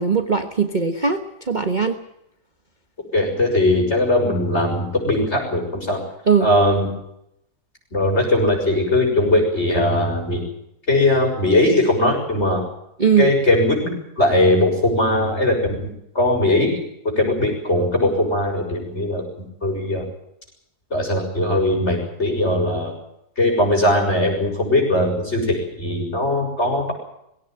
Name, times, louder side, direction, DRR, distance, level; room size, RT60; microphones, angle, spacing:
voice 1, 0.0-2.0 6.3-6.5 13.0-13.3, right 6 dB, 30° right, 6 dB, 1.3 m, -19 dB
voice 2, 3.1-6.0 6.4-6.9 7.9-10.4 10.9-12.6 13.2-13.8 14.2-15.6 15.8-15.9 16.1-16.8 17.2-20.1 20.9-22.9 23.4-26.9, left 1 dB, 40° left, 1 dB, 6.8 m, -19 dB
20.5 x 17.0 x 9.1 m, 0.80 s
omnidirectional pair, 1.8 m